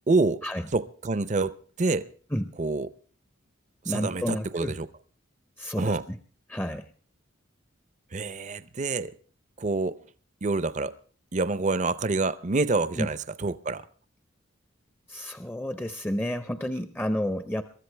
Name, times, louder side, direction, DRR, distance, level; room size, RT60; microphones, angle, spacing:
voice 1, 0.1-0.4 0.7-2.1 2.6-2.9 3.8-4.9 5.8-6.0 8.1-9.1 9.6-10.0 10.4-10.9 11.3-13.9, right 3 dB, 35° right, 0.6 m, -27 dB
voice 2, 3.8-4.7 5.6-6.2 6.5-6.9 13.0-13.1 15.1-17.6, equal, 10° left, 0.6 m, -30 dB
23.0 x 14.0 x 3.3 m
head